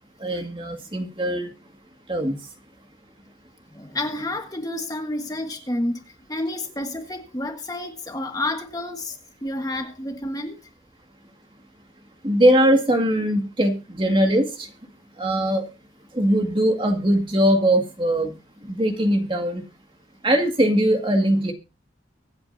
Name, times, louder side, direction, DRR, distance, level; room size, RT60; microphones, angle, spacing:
voice 1, 0.2-1.5 2.1-2.4 12.2-14.7 15.2-15.7 16.1-18.3 18.7-19.6 20.2-21.5, right 1 dB, 25° right, 4 dB, 2.0 m, -21 dB
voice 2, 3.7-6.0 6.3-10.6, left 1 dB, 20° left, 4 dB, 1.5 m, -30 dB
24.5 x 8.8 x 2.7 m, 0.29 s
head